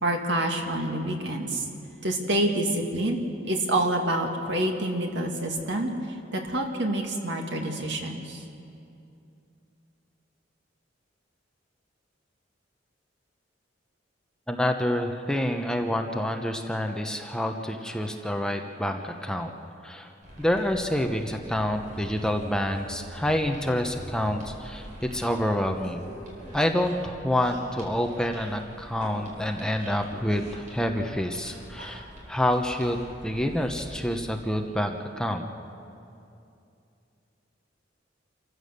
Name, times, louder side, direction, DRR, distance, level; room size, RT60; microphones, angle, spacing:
voice 1, 0.0-1.7 2.0-3.2 3.4-5.9 6.3-8.4, right 1 dB, 70° right, 2 dB, 2.3 m, -27 dB
voice 2, 14.5-19.5 19.8-20.1 20.4-26.0 26.5-35.4, left 1 dB, 5° left, 4 dB, 0.9 m, -28 dB
sound 1, 20.2-34.0, equal, 45° right, 4.9 m, -45 dB
28.0 x 14.5 x 6.7 m, 2.6 s
head